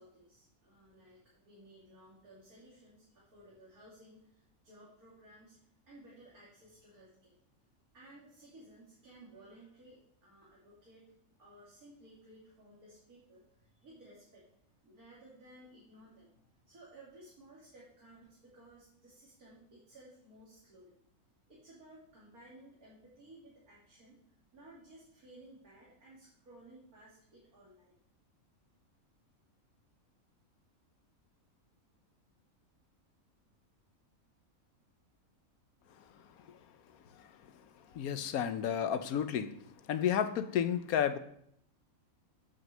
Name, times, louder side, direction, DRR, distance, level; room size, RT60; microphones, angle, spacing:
voice 1, 0.0-5.6 5.9-7.4 7.9-11.1 11.4-14.4 14.8-21.0 21.5-24.2 24.5-28.0, right 1 dB, 85° right, -6 dB, 3.1 m, -57 dB
voice 2, 37.9-39.5 39.9-41.2, left 8 dB, 80° left, 11 dB, 1.2 m, -31 dB
8.4 x 6.2 x 6.6 m, 0.70 s
omnidirectional pair, 1.5 m